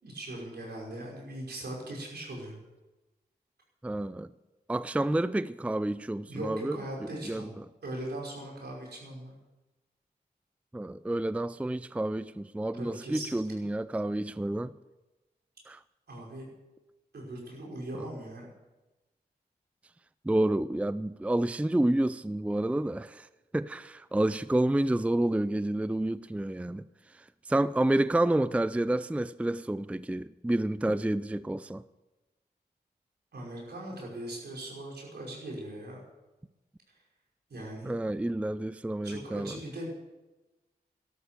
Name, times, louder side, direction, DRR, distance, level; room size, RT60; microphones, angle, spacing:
voice 1, 0.0-2.6 6.3-7.5 7.8-9.4 12.7-13.4 16.1-16.5 17.1-18.5 33.3-36.0 37.5-37.9 39.0-39.9, right 1 dB, 75° right, 5.5 m, -40 dB
voice 2, 3.8-4.3 4.7-6.8 7.3-7.6 10.7-14.7 15.7-15.8 20.2-23.3 23.5-26.8 27.2-31.8 37.8-39.6, right 1 dB, 10° right, 0.4 m, -29 dB
12.5 x 12.5 x 6.9 m
cardioid pair, 45°, 17 cm